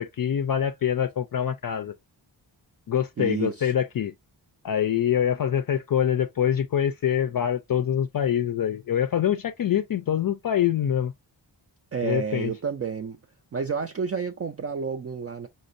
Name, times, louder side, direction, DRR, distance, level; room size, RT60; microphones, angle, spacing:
voice 1, 0.0-1.9 2.9-4.1 4.6-11.1 12.0-12.5, left 9 dB, 55° left, 0.4 m, -25 dB
voice 2, 3.2-3.7 11.9-13.2 13.5-15.5, right 6 dB, 35° right, 0.4 m, -30 dB
5.1 x 2.0 x 2.5 m
wide cardioid pair, 110°, 43 cm